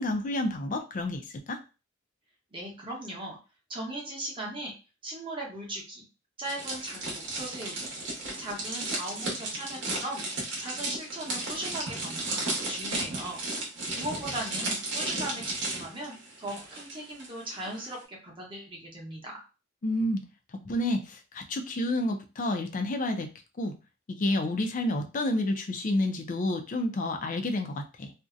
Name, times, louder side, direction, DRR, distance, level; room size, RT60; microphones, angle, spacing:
voice 1, 0.0-1.6 19.8-20.2 20.5-23.3 23.6-23.8 24.1-28.1, left 1 dB, 40° left, 5 dB, 0.4 m, -29 dB
voice 2, 2.5-3.4 3.7-4.7 5.0-6.0 6.4-8.0 8.4-10.3 10.6-13.4 13.9-19.4, right 1 dB, 25° right, -2 dB, 0.9 m, -38 dB
sound 1, 6.4-17.3 17.5-17.8, right 2 dB, 60° right, 0.9 m, -34 dB
2.6 x 2.1 x 2.4 m, 0.31 s
head